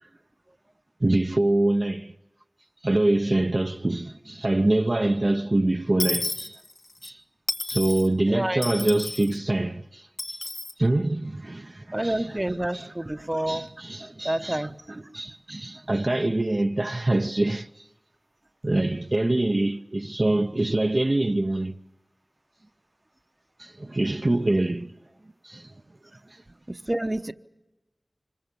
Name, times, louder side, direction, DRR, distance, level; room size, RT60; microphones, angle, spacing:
voice 1, 1.0-2.1 2.8-6.6 7.0-7.2 7.7-10.4 10.8-17.9 18.6-21.7 23.6-24.9 25.4-25.7 26.3-26.4, right 2 dB, 45° right, 0.8 m, -25 dB
Dishes pots and pans / Coin (dropping), 6.0-7.1 7.5-8.1 8.6-9.3 10.2-10.7, left 2 dB, 65° left, 1.3 m, -31 dB
voice 2, 8.3-8.6 11.9-13.7 14.2-14.7 26.9-27.3, right 1 dB, 25° right, 1.0 m, -28 dB
26.0 x 22.0 x 7.0 m
wide cardioid pair, 60°, 0 cm